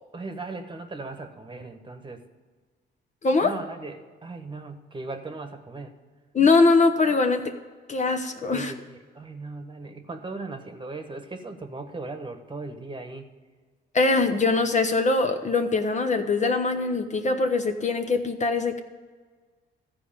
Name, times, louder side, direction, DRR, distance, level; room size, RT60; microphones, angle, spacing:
voice 1, 0.1-2.2 3.4-6.0 8.5-13.3, right 3 dB, 25° right, 6 dB, 1.3 m, -38 dB
voice 2, 6.3-7.5 7.9-8.7 13.9-18.8, left 3 dB, 35° left, 6 dB, 1.0 m, -22 dB
14.0 x 4.7 x 9.0 m, 1.4 s
cardioid pair, 90°, 20 cm